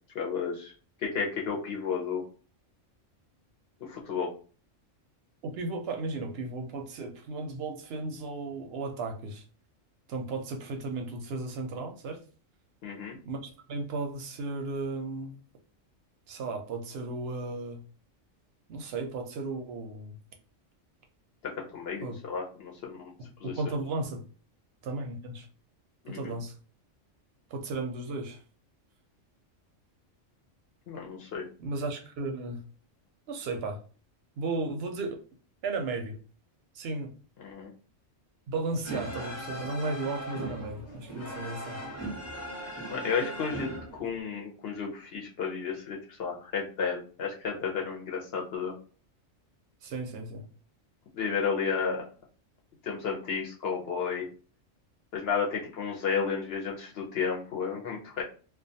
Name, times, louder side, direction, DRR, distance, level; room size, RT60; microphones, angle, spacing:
voice 1, 0.1-0.7 1.0-2.2 3.8-4.3 12.8-13.2 21.6-23.1 23.4-23.5 26.0-26.3 30.9-31.4 37.4-37.7 42.9-48.7 51.1-52.0 52.8-54.3 55.1-58.2, left 6 dB, 65° left, 0.7 m, -32 dB
voice 2, 5.4-9.4 10.1-12.2 13.3-15.4 16.3-17.8 18.7-20.2 22.0-22.2 23.2-24.2 24.8-25.5 26.1-26.5 27.5-28.4 31.6-32.6 33.3-33.8 34.4-35.2 35.6-36.2 36.7-37.1 38.5-41.8 49.8-50.5, right 3 dB, 65° right, 0.7 m, -35 dB
sound 1, 38.8-44.2, right 1 dB, 20° left, 0.5 m, -39 dB
2.2 x 2.2 x 2.6 m
omnidirectional pair, 1.3 m